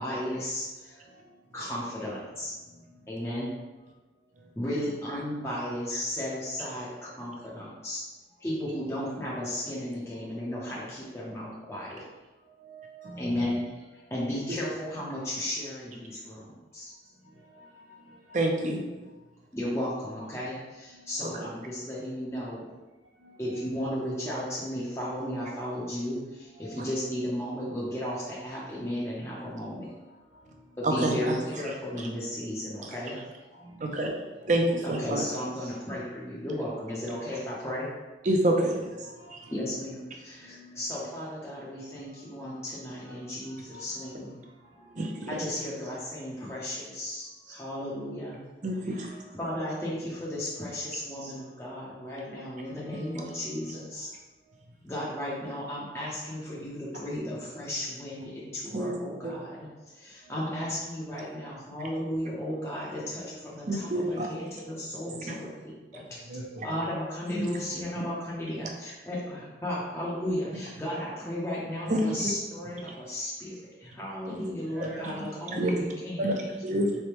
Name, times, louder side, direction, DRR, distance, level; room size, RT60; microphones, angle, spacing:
voice 1, 0.0-1.0 1.5-2.5 3.1-3.5 4.6-8.0 8.4-12.0 13.2-13.6 14.1-16.9 19.5-22.6 23.4-29.9 30.8-33.2 34.8-37.9 39.5-44.4 45.3-48.4 48.9-54.1 54.8-59.7 59.9-66.0 66.6-76.4, left 1 dB, 15° left, -7 dB, 0.6 m, -34 dB
voice 2, 1.0-1.4 2.7-3.1 4.4-4.8 12.4-13.5 17.2-18.6 20.9-21.1 23.2-23.7 26.5-26.9 30.1-30.7 33.5-34.1 34.7-34.8 35.5-35.7 39.0-39.8 40.4-41.1 42.4-42.7 43.0-44.1 44.6-45.5 47.4-47.6 49.1-49.2 49.5-49.6 51.0-51.9 52.5-54.1 60.2-60.6 63.6-63.7 66.2-66.7 74.6-75.1, right 1 dB, 85° right, -7 dB, 0.9 m, -49 dB
voice 3, 18.3-18.8 21.2-21.3 30.8-31.4 33.8-34.1 34.5-35.2 38.2-38.9 39.3-39.4 45.0-45.4 48.6-49.1 58.7-58.9 63.7-64.3 65.3-65.4 71.9-72.1 74.3-74.4 74.8-75.1 75.6-75.7 76.2-77.0, right 1 dB, 45° right, 2 dB, 0.6 m, -27 dB
4.2 x 3.3 x 2.9 m, 1.2 s
head